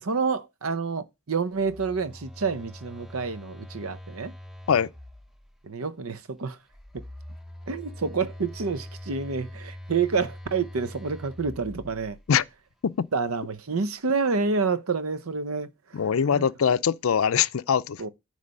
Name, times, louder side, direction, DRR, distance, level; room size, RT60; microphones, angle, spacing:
voice 1, 0.0-4.3 5.6-6.6 7.7-12.2 13.1-16.0 16.3-16.5 18.0-18.1, right 4 dB, 90° right, 0.8 m, -28 dB
Telephone, 1.5-5.6 6.7-12.4, left 1 dB, ahead, 0.6 m, -43 dB
voice 2, 15.9-18.1, left 7 dB, 75° left, 0.4 m, -23 dB
9.5 x 3.3 x 6.5 m
head